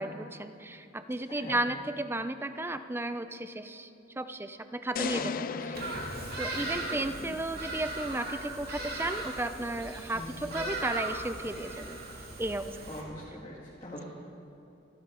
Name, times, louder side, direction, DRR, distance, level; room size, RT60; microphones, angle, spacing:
voice 1, 0.0-3.9 4.2-5.3 6.4-12.0 12.4-12.8, right 1 dB, 10° right, 10 dB, 0.6 m, -34 dB
voice 2, 1.3-1.6 5.1-6.0 6.6-7.3 10.1-10.3 12.9-14.0, left 1 dB, 30° left, -6 dB, 2.2 m, -43 dB
sound 1, 5.0-7.3, left 6 dB, 45° left, 0.4 m, -37 dB
Bird vocalization bird call bird song, 5.7-13.0, right 2 dB, 50° right, 2.6 m, -38 dB
29.0 x 12.0 x 3.8 m, 2.8 s
head